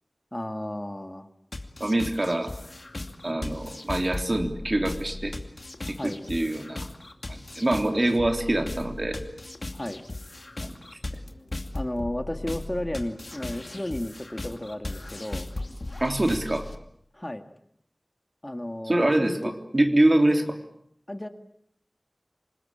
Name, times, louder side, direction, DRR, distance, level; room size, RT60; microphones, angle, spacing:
voice 1, 0.3-1.3 5.8-6.2 9.7-10.0 11.7-15.5 17.1-17.4 18.4-19.4 20.3-20.4 21.1-21.3, left 1 dB, 30° left, 7 dB, 2.0 m, -33 dB
sound 1, 1.5-16.8, left 2 dB, 60° left, 2.5 m, -37 dB
voice 2, 1.8-2.5 3.2-5.3 5.9-6.8 7.3-9.2 10.6-10.8 11.1-11.2 16.0-16.7 18.9-20.6, right 1 dB, 50° right, 5 dB, 3.4 m, -25 dB
27.5 x 20.5 x 8.8 m, 0.71 s
wide cardioid pair, 50°, 0 cm